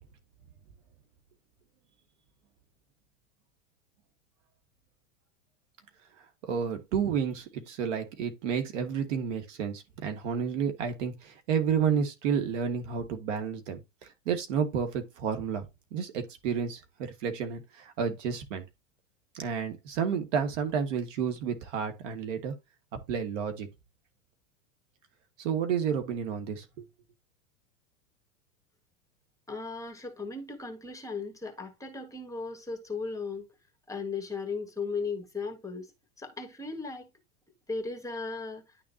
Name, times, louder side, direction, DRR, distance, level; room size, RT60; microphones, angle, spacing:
voice 1, 6.4-13.8 14.2-15.6 15.9-18.6 19.3-22.5 23.1-23.7 25.4-26.9, right 7 dB, 65° right, 1.7 m, -31 dB
voice 2, 29.5-33.5 33.9-35.9 36.2-37.1 37.7-38.6, left 4 dB, 10° left, 1.6 m, -36 dB
11.0 x 3.7 x 2.8 m
hypercardioid pair, 105°, 39 cm